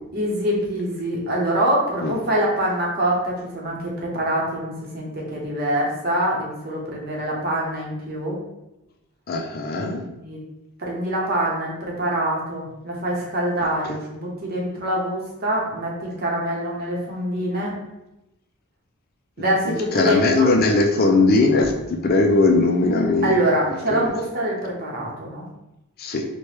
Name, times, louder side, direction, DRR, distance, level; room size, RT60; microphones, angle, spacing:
voice 1, 0.1-8.4 10.1-10.4 10.8-17.7 19.4-20.5 23.2-25.4, right 1 dB, 45° right, -3 dB, 0.9 m, -25 dB
voice 2, 9.3-10.0 19.7-23.4 23.9-24.1 26.0-26.3, left 3 dB, 45° left, 3 dB, 0.4 m, -19 dB
4.4 x 2.2 x 3.2 m, 0.91 s
head